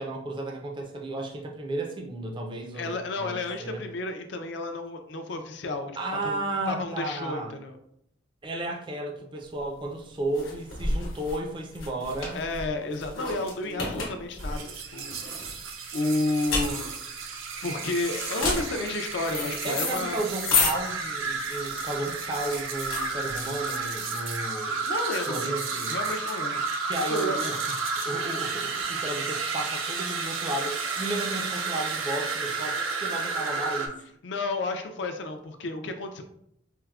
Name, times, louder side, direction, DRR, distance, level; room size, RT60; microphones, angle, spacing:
voice 1, 0.0-3.8 6.0-7.6 8.4-12.4 13.6-14.1 19.6-24.9 25.3-25.9 26.9-27.6 28.0-34.0, right 2 dB, 25° right, 1 dB, 0.3 m, -33 dB
voice 2, 2.7-5.9 6.2-6.4 6.7-7.8 12.3-15.2 15.9-16.9 17.6-20.2 24.9-25.5 25.9-27.4 34.2-36.2, left 2 dB, 60° left, 6 dB, 0.4 m, -31 dB
sound 1, 9.5-23.9, left 3 dB, 75° left, 0.9 m, -32 dB
sound 2, 14.4-33.9, right 4 dB, 85° right, 0.5 m, -32 dB
4.4 x 2.0 x 2.3 m, 0.74 s
head